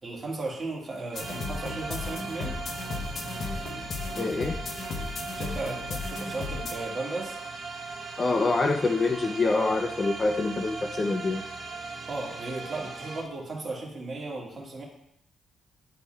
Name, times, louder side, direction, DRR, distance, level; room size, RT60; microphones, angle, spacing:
voice 1, 0.0-2.6 5.3-7.4 12.0-14.8, right 2 dB, 30° right, -3 dB, 1.8 m, -36 dB
sound 1, 1.1-6.7, left 4 dB, 55° left, 0.7 m, -35 dB
sound 2, 1.1-13.2, right 4 dB, 50° right, 0.9 m, -38 dB
voice 2, 4.2-4.6 8.2-11.4, left 3 dB, 30° left, 5 dB, 0.4 m, -26 dB
10.0 x 4.1 x 2.3 m, 0.76 s
cardioid pair, 120°, 0 cm